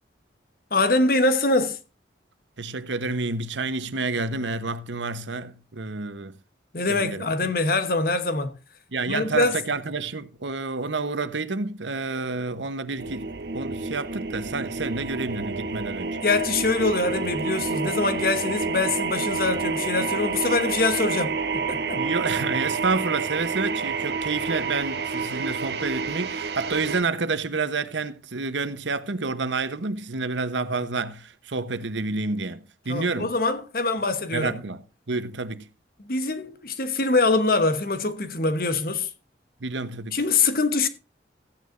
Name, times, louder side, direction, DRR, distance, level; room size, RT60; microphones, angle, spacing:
voice 1, 0.7-1.8 6.7-8.5 9.1-9.6 16.2-22.0 32.9-34.6 36.0-39.1 40.1-40.9, left 3 dB, 50° left, 1.1 m, -24 dB
voice 2, 2.6-6.3 6.9-7.5 8.9-16.2 21.9-33.3 34.3-35.7 39.6-40.2, right 3 dB, 85° right, 1.0 m, -29 dB
sound 1, 13.0-27.0, right 4 dB, 65° right, 1.1 m, -29 dB
14.5 x 9.5 x 2.6 m
head